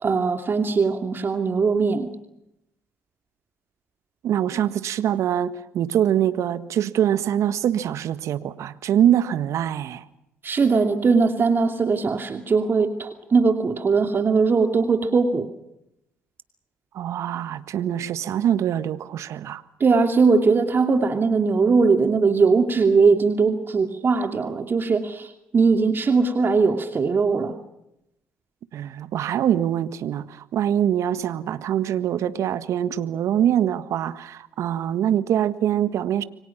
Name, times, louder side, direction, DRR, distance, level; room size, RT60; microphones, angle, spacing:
voice 1, 0.0-2.1 10.4-15.5 19.8-27.5, right 4 dB, 40° right, 2.6 m, -20 dB
voice 2, 4.2-10.0 16.9-19.6 28.7-36.2, right 10 dB, 60° right, 1.5 m, -24 dB
28.0 x 24.5 x 5.9 m
hypercardioid pair, 55°, 6 cm